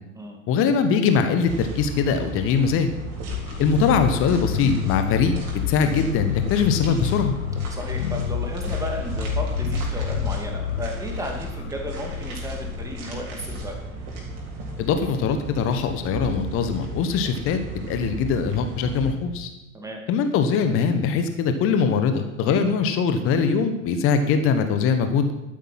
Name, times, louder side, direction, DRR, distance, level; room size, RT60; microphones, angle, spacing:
voice 1, 0.5-2.9 3.6-5.3 5.7-7.3 14.8-17.6 17.9-19.5 20.1-25.3, left 6 dB, 30° left, 8 dB, 1.3 m, -22 dB
sound 1, 1.4-19.1, right 2 dB, 35° right, 3.8 m, -34 dB
sound 2, 3.3-14.2, left 12 dB, 60° left, 0.5 m, -30 dB
voice 2, 7.7-13.8 19.7-20.0, right 1 dB, 10° right, 1 dB, 2.5 m, -34 dB
12.5 x 9.1 x 5.8 m, 0.92 s
figure-of-eight pair, 90°, 40 cm